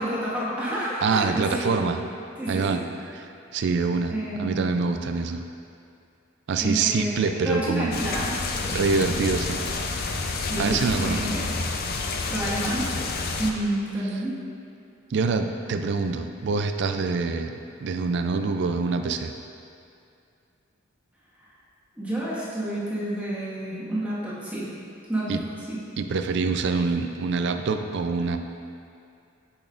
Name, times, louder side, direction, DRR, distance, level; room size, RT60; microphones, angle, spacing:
voice 1, 0.0-1.9 2.4-2.8 4.1-4.6 6.6-9.2 10.5-10.8 11.0-11.5 12.3-12.9 13.4-14.4 21.9-24.7 25.1-25.4 25.7-25.8, right 1 dB, 10° right, -11 dB, 1.5 m, -29 dB
voice 2, 1.0-2.0 2.5-2.8 3.5-4.1 4.4-5.4 6.5-7.9 8.7-9.6 10.6-11.2 15.1-17.5 17.8-19.3 25.3-25.4 26.0-28.4, right 4 dB, 60° right, 7 dB, 0.4 m, -25 dB
sound 1, 7.9-13.5, left 3 dB, 50° left, 0.5 m, -29 dB
8.8 x 6.2 x 2.5 m, 2.5 s
head